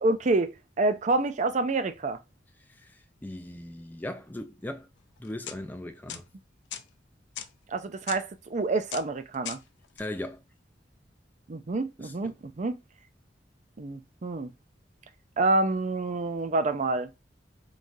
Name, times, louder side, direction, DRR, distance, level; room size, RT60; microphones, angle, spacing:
voice 1, 0.0-2.2 7.7-9.6 11.5-12.8 13.8-14.5 15.4-17.1, right 2 dB, 40° right, 0.5 m, -27 dB
voice 2, 2.8-4.9 5.2-6.2 10.0-10.4 12.0-12.3, left 1 dB, 10° left, 0.4 m, -38 dB
sound 1, 5.2-5.6 6.1-6.2 6.7-6.8 7.4-7.5 8.1-8.2 8.9-9.1 9.3-9.6 9.8-10.0, left 10 dB, 75° left, 0.4 m, -38 dB
3.6 x 3.2 x 2.6 m
head